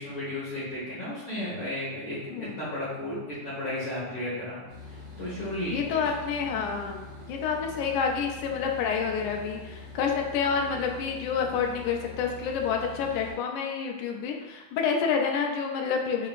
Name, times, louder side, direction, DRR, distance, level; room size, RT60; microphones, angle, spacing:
voice 1, 0.0-4.6 4.9-6.0, left 1 dB, 55° left, -10 dB, 1.7 m, -34 dB
voice 2, 2.3-2.6 5.7-16.3, left 6 dB, 80° left, 2 dB, 1.9 m, -28 dB
sound 1, 4.7-13.3, left 3 dB, 60° right, 2.5 m, -44 dB
6.1 x 2.7 x 2.5 m, 1.1 s
omnidirectional pair, 3.7 m